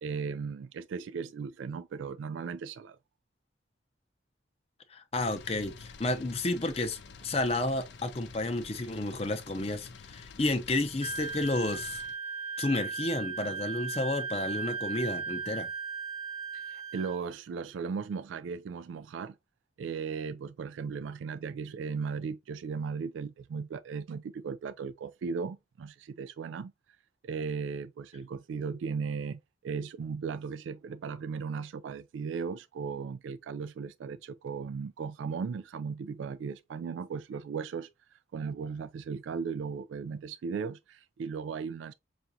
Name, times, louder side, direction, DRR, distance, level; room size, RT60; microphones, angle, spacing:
voice 1, 0.0-3.0 16.5-19.4 19.8-26.7 27.2-41.9, right 5 dB, 90° right, 0.3 m, -37 dB
voice 2, 4.9-12.0 12.6-15.7, left 2 dB, 35° left, 0.6 m, -31 dB
sound 1, 5.1-12.1, left 4 dB, 75° left, 0.6 m, -49 dB
Wind instrument woodwind instrument, 11.0-17.2, right 5 dB, 40° right, 0.8 m, -37 dB
5.7 x 2.5 x 2.6 m
head